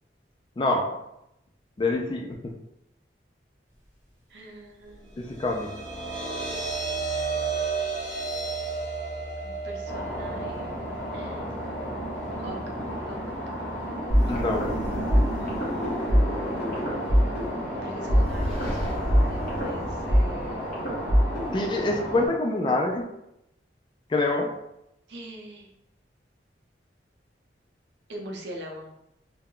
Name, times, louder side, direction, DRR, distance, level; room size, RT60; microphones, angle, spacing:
voice 1, 0.6-1.0 1.8-2.5 5.2-5.7 14.3-14.7 21.5-23.1 24.1-24.5, left 2 dB, 25° left, 2 dB, 0.3 m, -26 dB
voice 2, 4.3-5.1 9.4-10.7 11.1-11.6 12.3-12.7 13.1-13.2 14.2-14.4 15.4-16.1 17.7-20.7 25.1-25.7 28.1-28.9, right 1 dB, 75° right, 1 dB, 0.5 m, -42 dB
sound 1, 5.1-17.5, right 4 dB, 15° right, 0.9 m, -35 dB
sound 2, 9.9-22.3, equal, 10° left, 0.9 m, -33 dB
sound 3, 14.1-21.7, equal, 50° left, 1.0 m, -25 dB
2.2 x 2.0 x 3.6 m, 0.83 s
head